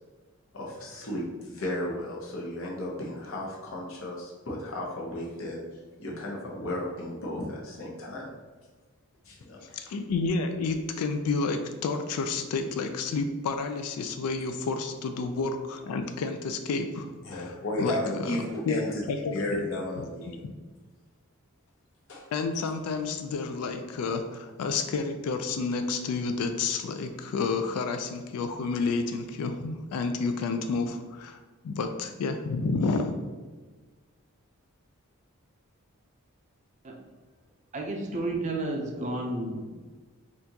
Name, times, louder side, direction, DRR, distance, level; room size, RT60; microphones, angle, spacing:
voice 1, 0.5-5.6 6.0-8.3 9.2-9.6 17.2-19.0 19.3-20.4 22.1-22.3, left 1 dB, 65° left, -3 dB, 0.8 m, -34 dB
voice 2, 9.6-19.6 20.0-20.5 22.3-33.2, left 4 dB, 90° left, 7 dB, 0.3 m, -30 dB
voice 3, 37.7-39.6, right 2 dB, 30° right, 1 dB, 0.4 m, -31 dB
4.3 x 2.5 x 2.7 m, 1.3 s
head